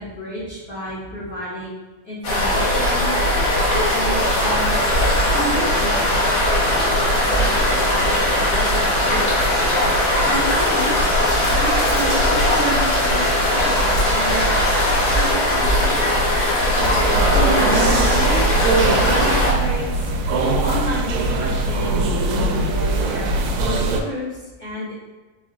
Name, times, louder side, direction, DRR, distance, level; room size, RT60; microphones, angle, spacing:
voice 1, 0.0-1.7 2.0-3.1 3.7-4.8 5.3-6.7 7.3-9.5 10.2-11.0 11.5-14.7 15.1-16.4 17.3-18.5 19.1-20.2 20.6-22.1 22.6-24.9, equal, 90° left, -12 dB, 0.6 m, -31 dB
sound 1, 2.2-19.5, left 1 dB, 65° left, 1.2 m, -19 dB
sound 2, 4.1-15.3, left 1 dB, 40° left, 1.4 m, -27 dB
sound 3, 16.8-24.0, right 2 dB, 80° right, 1.6 m, -21 dB
5.2 x 2.4 x 3.7 m, 1.2 s
omnidirectional pair, 3.6 m